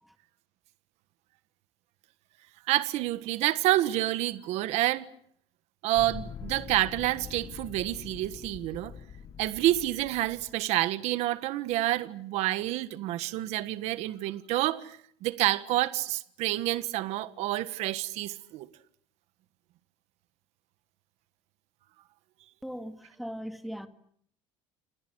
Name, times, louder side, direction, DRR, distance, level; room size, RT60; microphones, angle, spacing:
voice 1, 2.7-5.1 5.8-8.9 9.4-18.7, right 15 dB, 65° right, 1.5 m, -28 dB
sound 1, 6.0-10.6, left 7 dB, 30° left, 1.1 m, -44 dB
voice 2, 22.6-23.9, equal, ahead, 1.9 m, -39 dB
29.0 x 27.5 x 6.3 m
cardioid pair, 160°, 12 cm